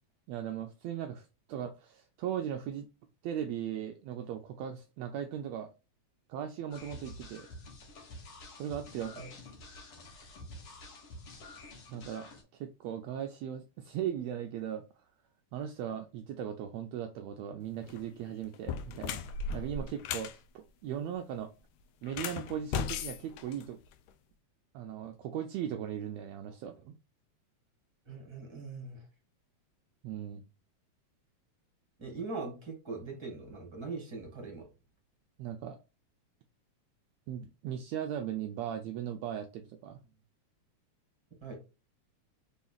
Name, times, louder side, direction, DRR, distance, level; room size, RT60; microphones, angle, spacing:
voice 1, 0.3-2.9 3.2-5.7 6.3-7.5 8.6-9.2 11.9-14.8 15.5-19.2 19.5-21.5 22.0-23.8 24.7-27.0 30.0-30.4 35.4-35.8 37.3-40.0, right 9 dB, 80° right, 6 dB, 1.6 m, -38 dB
sound 1, 6.7-12.4, left 2 dB, 55° left, 2.1 m, -49 dB
sound 2, 17.8-18.0 18.5-20.4 22.0-24.1, left 6 dB, 80° left, 1.9 m, -37 dB
voice 2, 28.1-29.0 32.0-34.7 41.4-41.5, right 3 dB, 10° right, 1 dB, 1.8 m, -41 dB
5.5 x 4.1 x 2.3 m, 0.30 s
omnidirectional pair, 3.3 m